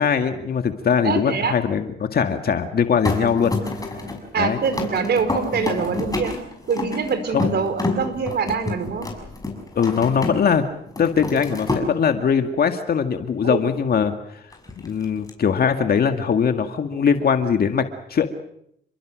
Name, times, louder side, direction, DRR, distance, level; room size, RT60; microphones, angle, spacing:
voice 1, 0.0-3.6 4.4-4.6 7.3-7.5 9.8-10.6 11.0-14.1 14.8-18.3, left 6 dB, 50° left, 6 dB, 2.1 m, -21 dB
voice 2, 1.0-1.6 4.3-6.3 6.7-9.1 13.4-13.6, right 5 dB, 55° right, 10 dB, 4.6 m, -24 dB
sound 1, 3.0-10.6 10.9-11.9 14.5-15.3, left 3 dB, 20° left, 6.7 m, -28 dB
29.0 x 22.5 x 6.4 m, 0.72 s
cardioid pair, 90°, 20 cm